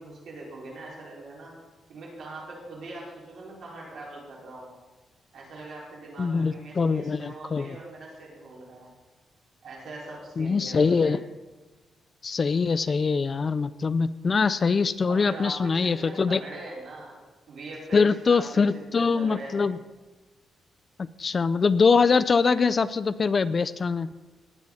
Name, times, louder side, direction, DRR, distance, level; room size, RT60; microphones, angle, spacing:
voice 1, 0.0-1.5 1.9-4.7 5.3-8.9 9.6-11.1 15.1-17.2 17.5-19.8, right 2 dB, 60° right, -5 dB, 4.9 m, -42 dB
voice 2, 6.2-7.7 10.4-11.2 12.2-16.4 17.9-19.8 21.2-24.1, left 5 dB, 30° left, 16 dB, 0.3 m, -23 dB
19.5 x 8.4 x 4.1 m, 1.2 s
wide cardioid pair, 160°, 0 cm